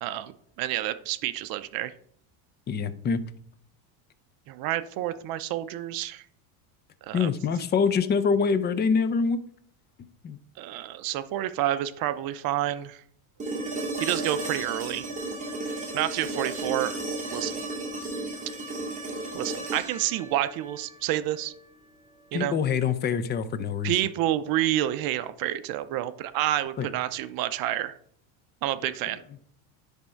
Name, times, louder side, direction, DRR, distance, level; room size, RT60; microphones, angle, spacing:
voice 1, 0.0-1.9 4.5-6.2 7.1-7.3 10.6-13.0 14.0-15.1 15.9-17.0 17.3-17.6 19.3-21.5 22.3-22.6 23.8-27.9 28.6-29.2, right 13 dB, 50° right, 13 dB, 0.6 m, -29 dB
voice 2, 2.7-3.2 7.1-9.4 10.2-10.4 22.3-24.0 26.8-26.9, left 5 dB, 25° left, 13 dB, 0.5 m, -25 dB
sound 1, 13.4-21.5 23.6-23.7, right 2 dB, 15° right, 2.4 m, -34 dB
10.5 x 3.6 x 4.4 m, 0.64 s
supercardioid pair, 120°, 45 cm